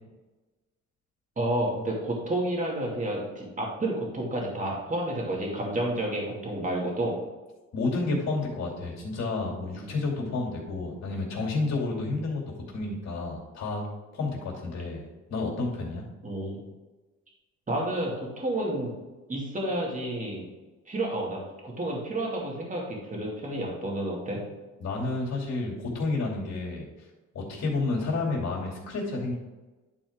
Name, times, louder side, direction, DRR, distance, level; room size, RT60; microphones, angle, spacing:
voice 1, 1.4-7.2 16.2-16.6 17.7-19.0 19.3-20.5 20.9-24.4, right 1 dB, 25° right, -2 dB, 2.4 m, -30 dB
voice 2, 7.7-12.4 12.7-13.8 14.1-16.0 24.8-26.9 27.3-29.3, left 3 dB, 60° left, -2 dB, 2.7 m, -30 dB
11.0 x 4.2 x 3.7 m, 1.2 s
cardioid pair, 90°, 30 cm